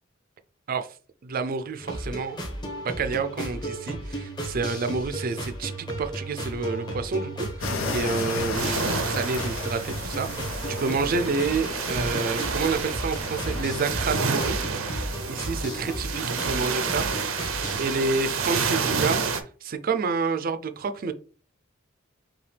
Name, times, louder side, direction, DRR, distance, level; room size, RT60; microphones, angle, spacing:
voice 1, 1.2-2.4 2.8-14.6 15.3-17.1 17.8-19.2 19.6-21.1, right 4 dB, 45° right, 0.4 m, -29 dB
sound 1, 1.8-17.8, right 1 dB, 20° left, 0.9 m, -34 dB
sound 2, 7.6-13.9, left 3 dB, 75° left, 0.9 m, -34 dB
sound 3, 8.5-19.4, right 5 dB, 90° right, 0.6 m, -29 dB
5.7 x 2.3 x 3.3 m
head